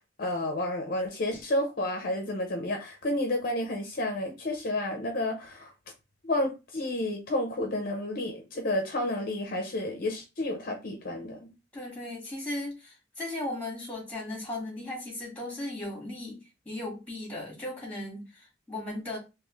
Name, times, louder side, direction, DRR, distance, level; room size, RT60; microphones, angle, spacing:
voice 1, 0.2-5.7 6.2-11.5, left 1 dB, 50° left, 0.7 m, -31 dB
voice 2, 11.7-19.2, left 1 dB, 10° left, 2.0 m, -37 dB
3.6 x 3.0 x 3.1 m
head